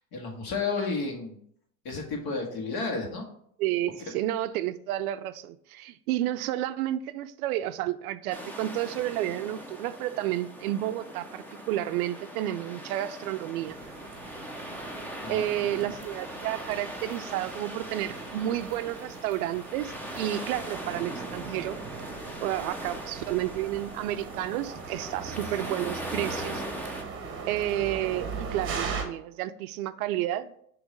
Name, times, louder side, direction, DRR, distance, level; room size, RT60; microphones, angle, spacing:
voice 1, 0.0-1.4 1.8-3.2 15.2-15.9, left 4 dB, 45° left, 2.0 m, -32 dB
voice 2, 3.6-13.8 15.3-21.8 22.4-26.6 27.5-30.5, right 13 dB, 60° right, 0.5 m, -31 dB
sound 1, 8.3-27.0, equal, 5° left, 0.6 m, -40 dB
sound 2, 13.7-29.0, right 5 dB, 25° right, 1.1 m, -40 dB
6.0 x 3.1 x 5.1 m
hypercardioid pair, 115°, 49 cm